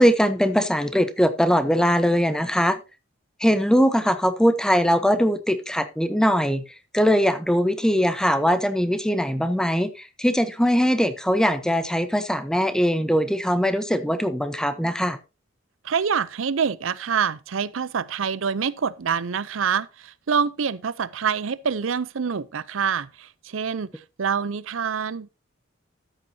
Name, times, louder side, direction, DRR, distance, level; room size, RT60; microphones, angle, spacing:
voice 1, 0.0-2.8 3.4-6.6 6.9-9.9 10.2-15.2, equal, 5° left, 0.9 m, -21 dB
voice 2, 15.8-25.3, right 6 dB, 70° right, 0.6 m, -26 dB
13.5 x 8.9 x 2.8 m
head